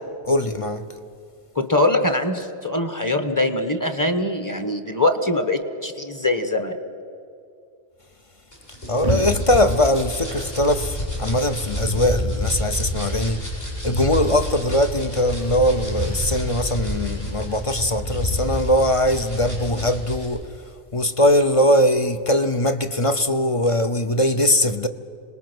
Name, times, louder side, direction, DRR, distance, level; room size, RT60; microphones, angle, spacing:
voice 1, 0.2-0.8 8.9-13.4 13.8-20.4 20.9-24.9, left 1 dB, 35° left, 0.7 m, -21 dB
voice 2, 1.5-6.8, left 2 dB, 15° left, 1.1 m, -22 dB
sound 1, 8.5-20.3, equal, 55° left, 7.3 m, -28 dB
26.5 x 20.0 x 6.2 m
omnidirectional pair, 1.2 m